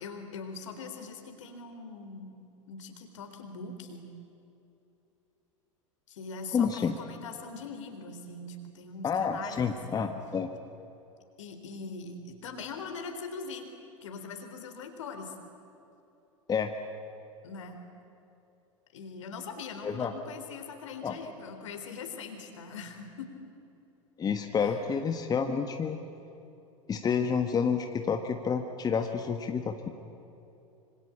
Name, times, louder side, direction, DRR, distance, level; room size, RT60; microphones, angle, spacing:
voice 1, 0.0-2.3 2.7-4.1 6.1-10.1 11.4-13.7 14.0-15.3 17.4-17.8 18.9-23.3 24.5-24.8, left 4 dB, 65° left, 6 dB, 3.8 m, -42 dB
voice 2, 6.5-6.9 9.0-10.5 16.5-16.7 19.8-20.1 21.0-21.2 24.2-26.0 26.9-29.9, left 6 dB, 20° left, 6 dB, 1.5 m, -29 dB
26.0 x 25.5 x 8.7 m, 2.9 s
figure-of-eight pair, 85°, 17 cm